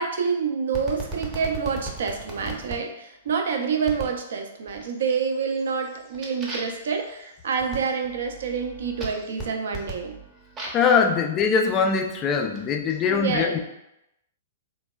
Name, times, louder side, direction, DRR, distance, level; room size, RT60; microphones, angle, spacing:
voice 1, 0.0-10.2 13.1-13.5, right 5 dB, 65° right, 4 dB, 0.4 m, -27 dB
sound 1, 0.7-2.8 3.9-4.2 4.7-5.2 5.5-10.9 11.7-13.0, right 2 dB, 25° right, 0.7 m, -38 dB
voice 2, 10.7-13.6, left 5 dB, 30° left, 4 dB, 0.3 m, -22 dB
3.2 x 2.1 x 2.2 m, 0.84 s
hypercardioid pair, 115°, 0 cm